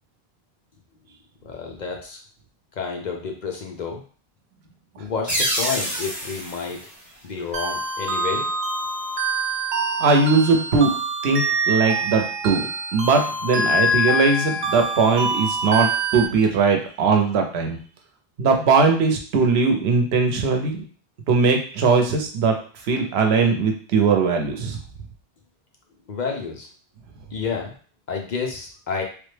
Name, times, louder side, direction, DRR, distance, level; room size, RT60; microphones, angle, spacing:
voice 1, 1.4-2.2 2.8-4.0 5.0-6.8 7.2-8.5 26.1-26.7 27.3-27.7 28.1-29.0, left 5 dB, 55° left, 1 dB, 0.6 m, -30 dB
sound 1, 5.3-7.8, right 1 dB, 20° right, 0.9 m, -28 dB
sound 2, 7.5-16.3, right 1 dB, 60° right, 0.6 m, -25 dB
voice 2, 10.0-10.9 11.2-17.8 18.4-20.8 21.3-22.5 22.8-24.8, right 4 dB, 90° right, 4 dB, 0.9 m, -20 dB
3.3 x 2.1 x 3.2 m, 0.42 s
omnidirectional pair, 1.0 m